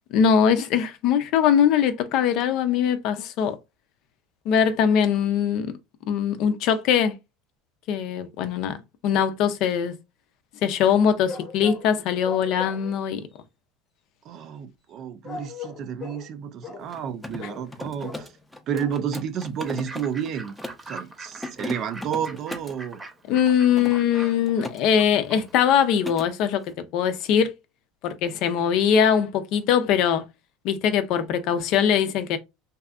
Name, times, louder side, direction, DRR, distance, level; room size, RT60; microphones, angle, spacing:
voice 1, 0.1-3.6 4.5-5.7 6.1-7.2 7.9-8.8 9.0-9.9 10.6-13.2 23.3-27.5 28.0-30.2 30.6-32.4, left 8 dB, 60° left, 0.5 m, -21 dB
sound 1, 11.3-11.9 12.2-13.0 15.2-16.3 16.6-16.9 17.4-17.7 18.0-18.3 18.7-19.0 19.4-19.5 19.7-19.8, left 5 dB, 30° left, 0.8 m, -38 dB
voice 2, 14.2-18.3 18.7-20.5 20.9-23.0, right 8 dB, 50° right, 0.4 m, -31 dB
Mechanisms, 16.8-20.9 21.3-22.8 23.4-24.8 25.1-25.4 25.7-26.3, left 2 dB, 10° left, 0.6 m, -38 dB
Fowl / Bird, 19.6-25.8, right 2 dB, 20° right, 0.8 m, -43 dB
2.7 x 2.4 x 2.3 m
hypercardioid pair, 90°, 0 cm